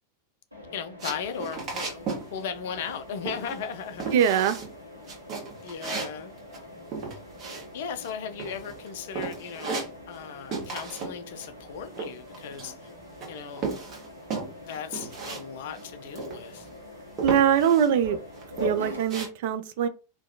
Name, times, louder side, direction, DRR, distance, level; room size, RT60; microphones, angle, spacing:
Mechanisms, 0.5-19.0, left 1 dB, 85° right, 0.6 m, -43 dB
voice 1, 0.7-4.2 5.6-6.3 7.7-12.9 13.3-13.8 14.6-16.7, left 7 dB, 55° left, 0.3 m, -37 dB
sound 1, 1.0-2.3 2.5-3.0 3.3-3.7 4.0-4.7 5.1-8.1 8.4-8.9 9.2-10.3 10.5-11.2 11.4-12.9 13.2-15.4 15.7-15.8 16.2-16.7 17.2-17.9 18.3-19.3, right 4 dB, 35° right, 1.0 m, -35 dB
voice 2, 4.1-4.6 17.2-18.2 18.6-19.9, right 9 dB, 50° right, 0.3 m, -22 dB
2.4 x 2.2 x 2.6 m
figure-of-eight pair, 90°, 0 cm